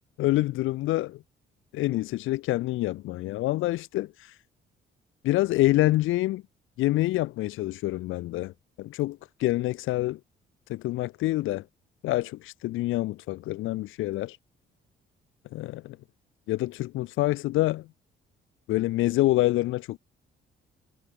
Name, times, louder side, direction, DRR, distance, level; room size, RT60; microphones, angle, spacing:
voice 1, 0.2-1.2 1.7-4.1 5.2-6.4 6.8-10.2 10.7-11.6 12.0-14.4 15.5-16.0 16.5-17.9 18.7-20.0, left 17 dB, 85° left, 0.6 m, -26 dB
cardioid pair, 90°, 20 cm